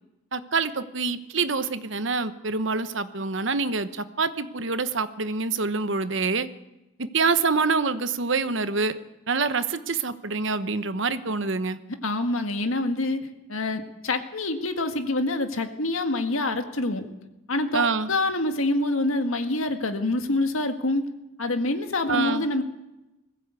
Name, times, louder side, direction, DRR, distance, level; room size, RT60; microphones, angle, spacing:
voice 1, 0.3-6.5 7.0-8.9 9.3-11.8 17.7-18.1 22.1-22.4, right 4 dB, 65° right, 12 dB, 1.0 m, -26 dB
voice 2, 12.0-13.2 13.5-17.1 17.5-21.1 21.4-22.6, left 2 dB, 85° left, 7 dB, 1.8 m, -26 dB
20.5 x 15.0 x 8.3 m, 0.97 s
head